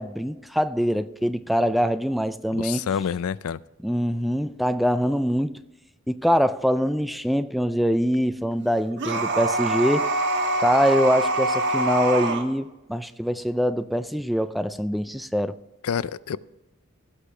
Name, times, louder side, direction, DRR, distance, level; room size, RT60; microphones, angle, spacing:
voice 1, 0.0-2.8 3.8-5.6 6.1-10.1 10.6-15.5, equal, ahead, 0.3 m, -24 dB
voice 2, 2.5-3.6 15.8-16.4, left 7 dB, 85° left, 0.4 m, -27 dB
sound 1, 9.0-12.4, right 2 dB, 55° right, 1.2 m, -24 dB
16.5 x 6.6 x 3.3 m
head